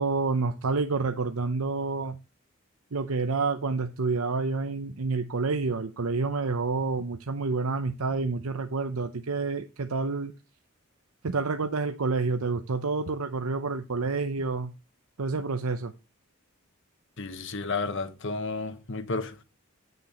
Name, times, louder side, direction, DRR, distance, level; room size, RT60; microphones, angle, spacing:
voice 1, 0.0-2.2 2.9-10.3 11.2-14.7 15.2-15.9, right 4 dB, 80° right, 0.8 m, -28 dB
voice 2, 17.2-19.4, left 3 dB, 60° left, 1.2 m, -32 dB
10.0 x 6.7 x 4.3 m
head